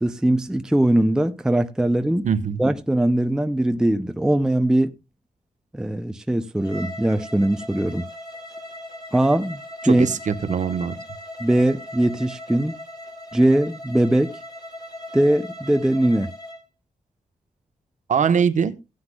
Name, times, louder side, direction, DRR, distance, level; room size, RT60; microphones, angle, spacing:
voice 1, 0.0-2.3 2.6-4.9 5.7-8.1 9.1-10.1 11.4-12.7 13.3-14.4 15.1-16.3, right 1 dB, 5° right, 0.4 m, -21 dB
voice 2, 2.2-2.6 9.8-10.9 18.1-18.7, right 7 dB, 55° right, 0.9 m, -22 dB
Bowed string instrument, 6.6-16.6, left 1 dB, 25° left, 2.5 m, -39 dB
16.0 x 9.6 x 2.2 m
wide cardioid pair, 170°, 15 cm